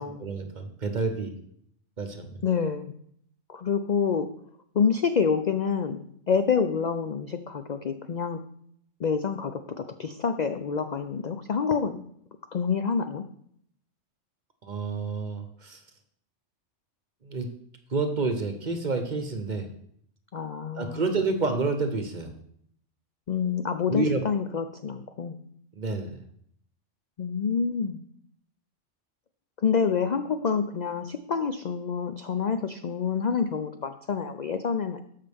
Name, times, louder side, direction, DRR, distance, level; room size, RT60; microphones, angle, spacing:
voice 1, 0.2-1.3 2.0-2.4 14.6-15.8 17.2-17.5 17.9-19.7 20.7-22.3 23.9-24.2 25.7-26.2, right 3 dB, 40° right, 6 dB, 0.9 m, -29 dB
voice 2, 2.4-2.9 3.5-4.3 4.7-8.4 9.0-12.0 12.5-13.2 20.3-21.0 23.3-25.4 27.2-28.0 29.6-35.0, left 6 dB, 55° left, 9 dB, 0.5 m, -27 dB
13.0 x 5.6 x 3.5 m, 0.68 s
omnidirectional pair, 1.3 m